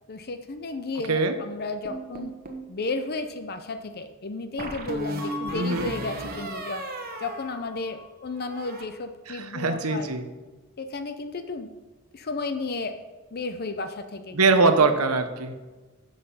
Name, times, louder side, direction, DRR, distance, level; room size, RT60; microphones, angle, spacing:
voice 1, 0.1-2.3 2.7-6.8 7.2-10.1 10.8-11.7 12.1-12.9 13.3-14.4 14.8-14.9, left 3 dB, 45° left, 8 dB, 0.7 m, -33 dB
sound 1, 1.8-2.7 4.6-8.1 8.4-8.8, right 1 dB, 45° right, 1.3 m, -35 dB
voice 2, 5.5-5.9 9.3-10.3 14.3-15.5, right 3 dB, 85° right, 8 dB, 1.1 m, -22 dB
10.5 x 6.7 x 5.6 m, 1.2 s
head